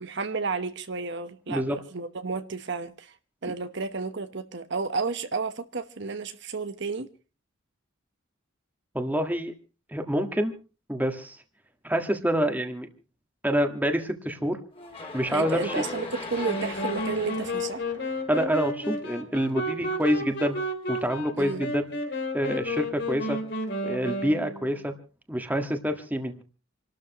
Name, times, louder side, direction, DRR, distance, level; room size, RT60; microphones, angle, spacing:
voice 1, 0.0-3.1 3.4-7.1 15.3-17.8 21.3-21.6, right 4 dB, 60° right, 1.1 m, -32 dB
voice 2, 8.9-9.5 9.9-10.5 10.9-11.4 11.8-12.9 13.4-14.6 15.1-15.8 18.3-20.6 20.9-21.9 22.3-23.4 23.8-24.9 25.3-26.4, equal, 10° right, 1.7 m, -27 dB
sound 1, 14.7-18.9, left 3 dB, 30° left, 3.2 m, -37 dB
sound 2, 16.4-24.9, left 1 dB, 60° left, 3.2 m, -32 dB
27.5 x 12.5 x 3.0 m
head